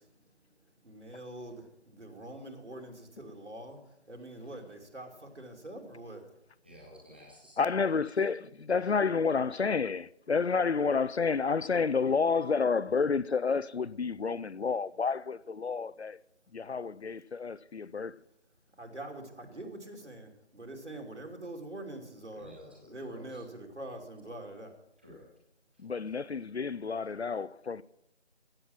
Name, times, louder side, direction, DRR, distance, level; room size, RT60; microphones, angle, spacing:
voice 1, 0.0-6.4 18.8-22.5 22.9-24.7, right 1 dB, 75° right, 2.9 m, -45 dB
voice 2, 6.6-8.0 22.3-23.4 25.0-25.3 25.7-25.8, left 1 dB, 10° right, 1.0 m, -53 dB
voice 3, 7.6-16.2 16.5-18.1 25.8-27.8, left 5 dB, 65° left, 0.5 m, -30 dB
15.5 x 7.3 x 6.1 m
figure-of-eight pair, 160°, 35 cm